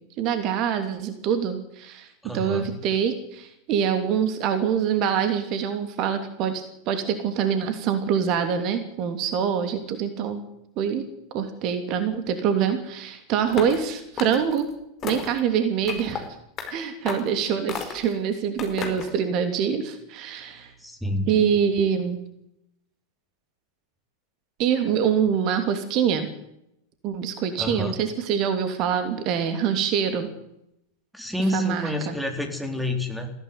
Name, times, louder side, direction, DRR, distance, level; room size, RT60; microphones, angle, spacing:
voice 1, 0.2-10.4 10.8-11.0 11.3-14.7 15.0-16.3 16.7-20.7 21.3-22.2 24.6-26.3 27.0-30.3 31.5-32.1, right 8 dB, 40° right, 8 dB, 2.9 m, -25 dB
voice 2, 2.2-2.7 20.8-21.4 27.6-27.9 31.1-33.3, left 1 dB, ahead, 5 dB, 4.0 m, -28 dB
Throwing small wood pieces, 13.5-13.8 14.2-14.6 15.0-15.4 15.9-16.2 16.6-16.7 17.1-17.3 17.7-18.1 18.6-19.1, left 6 dB, 30° left, 4.8 m, -33 dB
21.0 x 16.0 x 9.7 m, 0.81 s
figure-of-eight pair, 90°, 0 cm